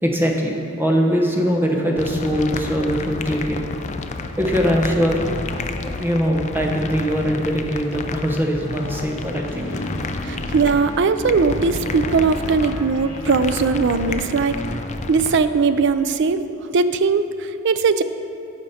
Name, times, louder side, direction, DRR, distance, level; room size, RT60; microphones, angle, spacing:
voice 1, 0.0-3.9 4.4-5.3 5.8-9.9, equal, 10° right, 0 dB, 0.9 m, -22 dB
sound 1, 2.0-15.4, left 3 dB, 35° left, 0.4 m, -30 dB
sound 2, 8.7-15.3, equal, 75° left, 1.5 m, -34 dB
voice 2, 10.2-14.6 15.1-18.0, right 4 dB, 60° right, 11 dB, 0.4 m, -19 dB
14.5 x 5.1 x 4.2 m, 2.7 s
head